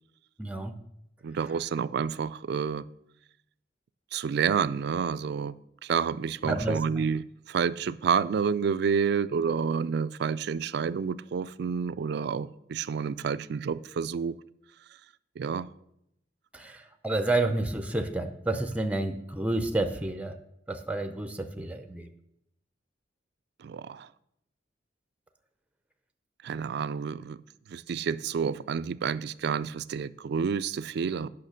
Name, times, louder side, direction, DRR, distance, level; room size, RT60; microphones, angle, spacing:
voice 1, 0.4-0.7 6.4-6.8 16.5-20.3 20.7-22.1, right 2 dB, 5° right, 8 dB, 0.5 m, -30 dB
voice 2, 1.2-2.8 4.1-5.6 5.8-14.4 15.4-15.7 23.6-24.1 26.4-27.4 27.7-31.3, right 6 dB, 60° right, 16 dB, 0.3 m, -29 dB
8.9 x 5.7 x 6.4 m, 0.81 s
head